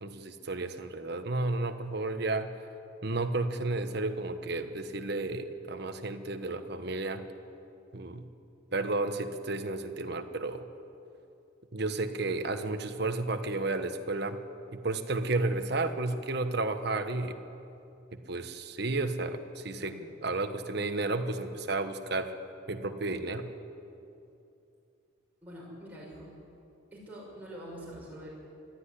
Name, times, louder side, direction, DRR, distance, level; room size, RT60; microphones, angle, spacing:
voice 1, 0.0-2.5 3.0-7.2 7.9-8.2 8.7-10.6 11.7-14.4 14.7-17.4 18.1-19.9 20.2-22.3 22.7-23.5, right 2 dB, 55° right, 8 dB, 1.3 m, -32 dB
voice 2, 25.4-26.3 26.9-28.3, equal, 10° right, -5 dB, 6.7 m, -45 dB
22.0 x 13.5 x 10.0 m, 2.7 s
head